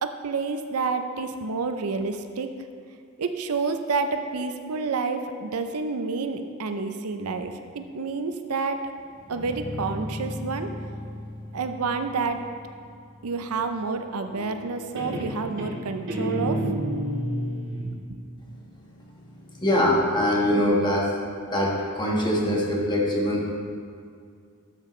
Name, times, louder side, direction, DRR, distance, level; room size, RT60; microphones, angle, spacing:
voice 1, 0.0-2.5 3.2-8.8 9.3-10.7 11.5-12.4 13.2-16.6 18.1-18.2, right 4 dB, 80° right, 7 dB, 0.6 m, -29 dB
Guitar, 9.2-12.8 14.3-14.7 15.0-17.9, equal, 60° right, 1.9 m, -31 dB
voice 2, 19.5-21.1 21.5-23.5, left 1 dB, 20° left, -3 dB, 1.5 m, -23 dB
12.5 x 6.7 x 3.2 m, 2.3 s
head